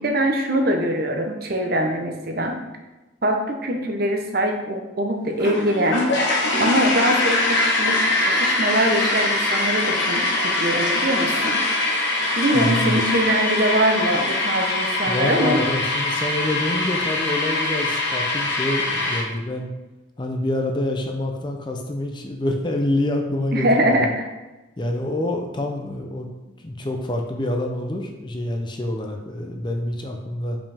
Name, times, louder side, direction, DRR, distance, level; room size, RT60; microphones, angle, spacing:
voice 1, 0.0-2.6 3.2-6.1 6.6-11.6 12.3-15.6 23.5-24.3, right 1 dB, 50° right, 3 dB, 0.8 m, -23 dB
sound 1, 5.4-19.2, left 2 dB, 65° left, 1.2 m, -23 dB
voice 2, 12.5-13.0 15.0-19.7 20.2-24.1 24.8-26.3 26.6-30.6, left 1 dB, 25° left, 3 dB, 0.5 m, -26 dB
5.3 x 5.2 x 3.4 m, 1.1 s
head